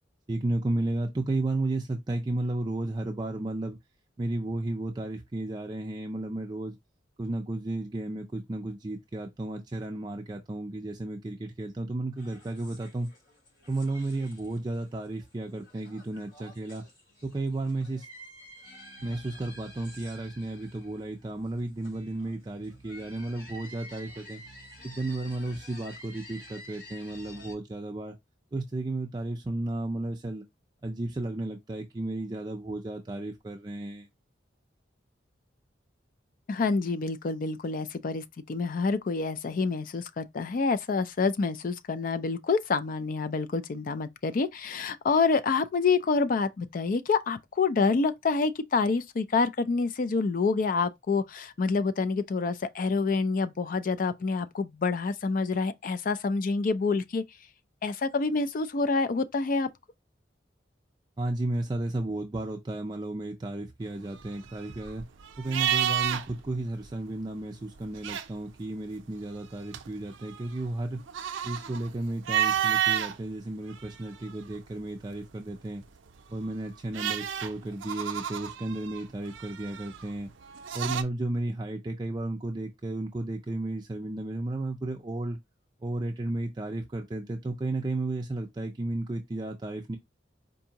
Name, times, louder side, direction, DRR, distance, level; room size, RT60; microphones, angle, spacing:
voice 1, 0.3-3.8 4.2-6.8 7.2-13.1 13.7-16.9 17.2-18.1 19.0-24.4 24.8-28.2 28.5-30.4 30.8-34.1 61.2-65.1 65.4-71.0 71.4-75.8 76.3-80.3 80.7-85.4 85.8-90.0, right 2 dB, 25° right, 0.4 m, -33 dB
sound 1, 12.2-27.5, equal, 75° left, 2.6 m, -50 dB
voice 2, 36.5-57.2 57.8-59.7, left 4 dB, 45° left, 0.4 m, -27 dB
sound 2, 64.0-66.5 66.8-66.9 67.8-68.7 69.2-73.2 73.7-74.7 76.2-81.0, right 10 dB, 85° right, 0.5 m, -31 dB
4.6 x 2.6 x 2.8 m
head